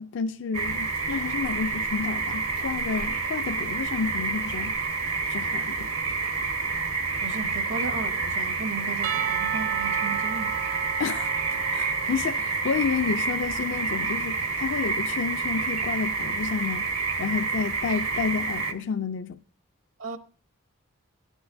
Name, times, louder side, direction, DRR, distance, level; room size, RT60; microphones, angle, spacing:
voice 1, 0.0-4.8 5.3-5.9 11.0-11.3 11.7-19.4, left 6 dB, 55° left, 0.4 m, -30 dB
sound 1, 0.5-18.7, right 4 dB, 85° right, 1.4 m, -28 dB
voice 2, 7.2-10.6 20.0-20.2, right 3 dB, 65° right, 0.8 m, -35 dB
Percussion / Church bell, 9.0-12.7, right 11 dB, 40° right, 0.4 m, -33 dB
16.5 x 9.9 x 2.6 m
head